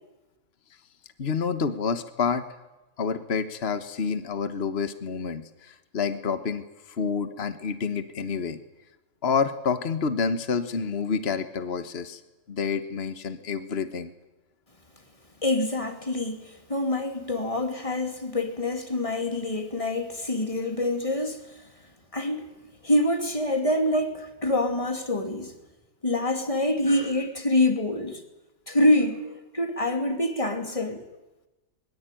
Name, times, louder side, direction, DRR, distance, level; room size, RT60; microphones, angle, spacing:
voice 1, 1.2-2.4 3.0-6.6 7.0-8.6 9.2-12.2 12.5-14.1, left 5 dB, 50° left, 1.6 m, -28 dB
voice 2, 15.4-21.5 22.1-22.5 22.8-25.5 26.0-28.2 28.7-31.0, left 1 dB, 25° left, 2.8 m, -26 dB
22.5 x 22.0 x 9.2 m
omnidirectional pair, 1.4 m